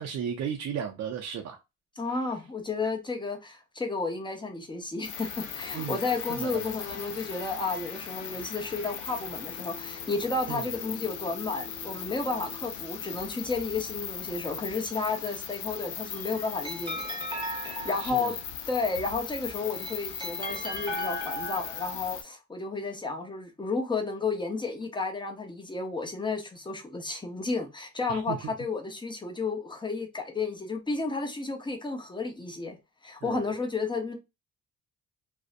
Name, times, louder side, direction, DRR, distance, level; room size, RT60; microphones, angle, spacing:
voice 1, 0.0-1.6 2.1-2.2 5.7-6.0 6.3-6.7 10.5-10.7 18.0-18.4 28.1-28.5 33.2-33.4, right 8 dB, 60° right, 0.5 m, -35 dB
voice 2, 2.0-17.0 17.5-18.4 18.7-32.8 33.0-34.2, left 3 dB, 15° left, 0.7 m, -32 dB
sound 1, 5.0-22.2, left 8 dB, 80° left, 0.5 m, -39 dB
sound 2, 5.1-12.7, left 4 dB, 50° left, 0.9 m, -48 dB
sound 3, 15.9-18.6 19.5-22.0, equal, 15° right, 1.0 m, -37 dB
2.6 x 2.1 x 2.4 m
cardioid pair, 90°, 30 cm